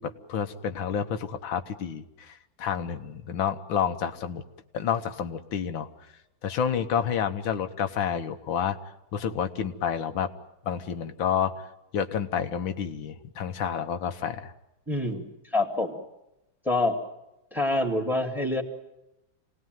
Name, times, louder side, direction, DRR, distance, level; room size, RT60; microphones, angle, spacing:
voice 1, 0.0-4.4 4.7-5.9 6.4-8.8 9.1-10.3 10.7-11.5 11.9-14.5, left 8 dB, 85° left, 7 dB, 1.9 m, -29 dB
voice 2, 14.9-16.0 16.6-17.0 17.5-18.6, left 2 dB, ahead, 5 dB, 2.3 m, -26 dB
26.5 x 19.0 x 9.2 m, 0.93 s
omnidirectional pair, 2.1 m